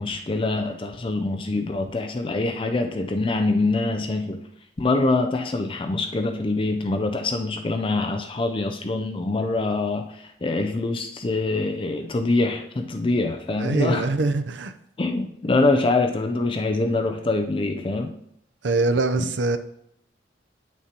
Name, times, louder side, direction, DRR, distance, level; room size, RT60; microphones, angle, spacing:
voice 1, 0.0-4.4 4.8-14.1 15.0-18.1 19.2-19.3, left 2 dB, 30° left, 0.4 m, -24 dB
voice 2, 13.5-14.7 18.6-19.6, right 3 dB, 80° right, 0.6 m, -23 dB
9.4 x 6.1 x 2.9 m
head